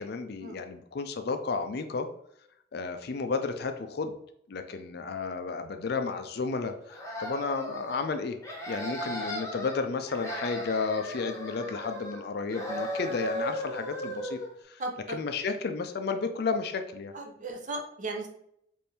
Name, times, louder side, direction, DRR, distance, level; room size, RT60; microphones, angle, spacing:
voice 1, 0.0-2.1 2.7-4.2 4.5-8.4 8.7-14.4 14.7-14.8 15.1-17.1, left 4 dB, 60° left, 8 dB, 0.4 m, -32 dB
sound 1, 6.9-8.0 8.4-9.8 10.1-12.2 12.5-14.5, equal, 20° left, 0.9 m, -36 dB
voice 2, 14.8-15.2 17.1-18.3, right 2 dB, 45° right, 2 dB, 0.7 m, -36 dB
4.3 x 2.6 x 3.3 m, 0.74 s
head